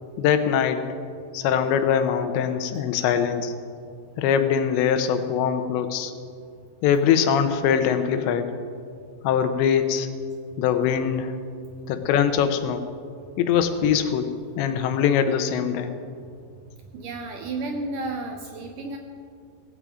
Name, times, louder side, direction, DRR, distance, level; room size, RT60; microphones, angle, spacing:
voice 1, 0.2-0.9 1.3-3.5 4.2-6.1 6.8-8.6 9.2-10.1 10.6-11.3 11.9-12.9 13.4-14.3 14.6-16.0, left 8 dB, 80° left, 8 dB, 3.2 m, -22 dB
voice 2, 16.9-19.0, right 2 dB, 90° right, 3 dB, 1.8 m, -32 dB
17.5 x 16.5 x 5.0 m, 2.3 s
omnidirectional pair, 5.1 m